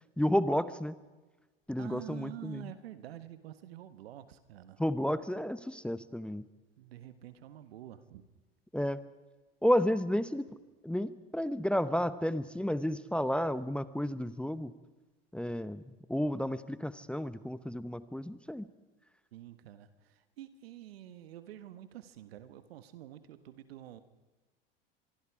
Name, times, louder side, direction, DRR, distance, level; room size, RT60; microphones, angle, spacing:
voice 1, 0.2-1.0 1.7-2.7 4.8-6.5 8.7-9.0 9.6-10.5 10.8-14.7 15.3-15.8 16.1-18.7, equal, 5° left, 14 dB, 0.9 m, -31 dB
voice 2, 1.8-4.8 6.8-8.2 19.3-24.0, right 12 dB, 80° right, 12 dB, 1.6 m, -48 dB
25.0 x 23.0 x 4.9 m, 1.2 s
hypercardioid pair, 85°, 30 cm